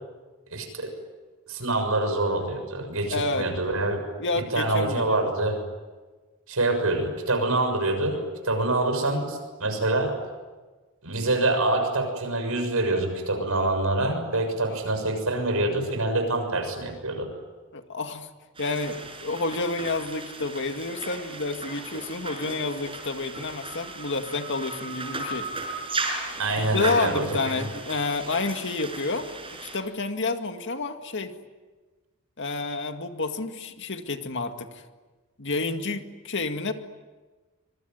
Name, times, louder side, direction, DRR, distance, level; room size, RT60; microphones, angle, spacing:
voice 1, 0.5-0.9 1.5-4.0 4.3-5.6 6.5-10.2 11.0-17.3 26.4-27.6, right 2 dB, 75° right, 6 dB, 6.8 m, -26 dB
voice 2, 3.1-3.5 4.2-5.3 17.7-18.3 18.6-25.5 26.6-29.3 29.7-31.3 32.4-34.8 35.4-36.7, left 3 dB, 55° left, 6 dB, 2.1 m, -29 dB
sound 1, 18.6-29.8, right 2 dB, 25° right, 6.1 m, -36 dB
25.5 x 24.0 x 9.2 m, 1.3 s
head